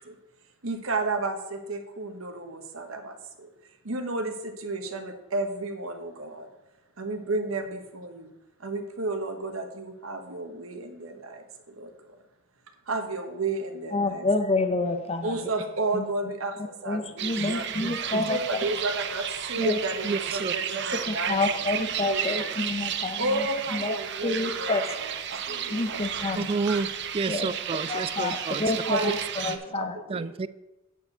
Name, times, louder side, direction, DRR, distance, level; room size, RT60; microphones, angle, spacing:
voice 1, 0.6-3.5 3.8-6.5 7.0-8.3 8.6-12.2 12.9-14.3 15.2-17.7 18.1-22.5 23.2-26.4 26.7-26.8 28.8-29.2 29.5-30.3, right 2 dB, 85° right, 6 dB, 1.3 m, -32 dB
voice 2, 13.9-15.3 15.9-16.0 16.9-18.4 19.6-19.8 21.1-23.5 23.7-24.0 24.2-25.0 25.7-26.5 27.3-27.5 27.9-29.0 29.4-30.0, left 2 dB, 30° left, 8 dB, 0.7 m, -28 dB
sound 1, 17.2-29.6, right 9 dB, 60° right, 0.7 m, -33 dB
voice 3, 17.8-18.2 20.0-20.5 26.3-28.6 30.1-30.5, right 4 dB, 30° right, 16 dB, 0.3 m, -30 dB
9.0 x 4.8 x 6.7 m, 0.96 s
head